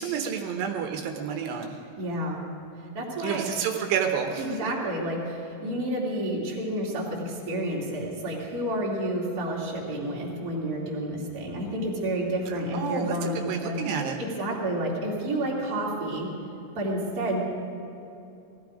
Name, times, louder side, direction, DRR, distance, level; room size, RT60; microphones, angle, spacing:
voice 1, 0.0-1.8 3.2-4.7 12.5-14.2, right 7 dB, 80° right, 3 dB, 3.1 m, -30 dB
voice 2, 2.0-2.5 2.9-3.4 4.4-13.8 14.2-16.3 16.7-17.4, right 1 dB, 25° right, -4 dB, 2.4 m, -30 dB
19.5 x 14.5 x 5.1 m, 2.9 s
omnidirectional pair, 5.0 m